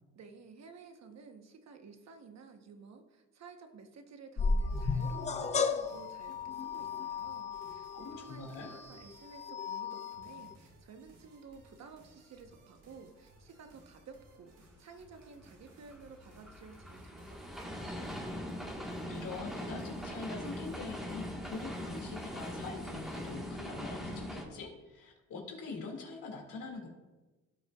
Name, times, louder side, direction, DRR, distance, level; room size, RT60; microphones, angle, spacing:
voice 1, 0.0-18.0, right 5 dB, 55° right, 5 dB, 1.0 m, -53 dB
sound 1, 4.4-10.5, left 4 dB, 20° left, 0.4 m, -35 dB
sound 2, 4.7-23.3, right 1 dB, 90° right, 2.1 m, -62 dB
voice 2, 7.9-8.7 19.1-26.9, left 4 dB, 80° left, 1 dB, 2.2 m, -44 dB
sound 3, 15.1-24.5, equal, ahead, 1.4 m, -41 dB
16.5 x 5.5 x 2.3 m, 1.2 s
cardioid pair, 120°, 31 cm